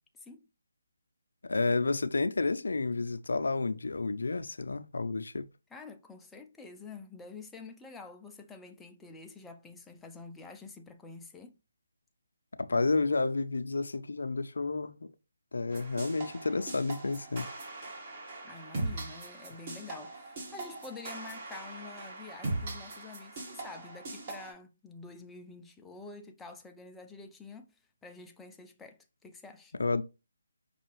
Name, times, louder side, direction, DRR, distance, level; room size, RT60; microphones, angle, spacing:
voice 1, 1.4-5.5 12.7-15.1 15.5-17.5 29.8-30.0, left 3 dB, 70° left, 0.5 m, -30 dB
voice 2, 5.7-11.5 18.4-29.7, left 4 dB, 5° left, 0.4 m, -48 dB
sound 1, 15.7-24.5, right 2 dB, 35° right, 1.3 m, -40 dB
5.4 x 2.4 x 3.1 m
figure-of-eight pair, 150°, 0 cm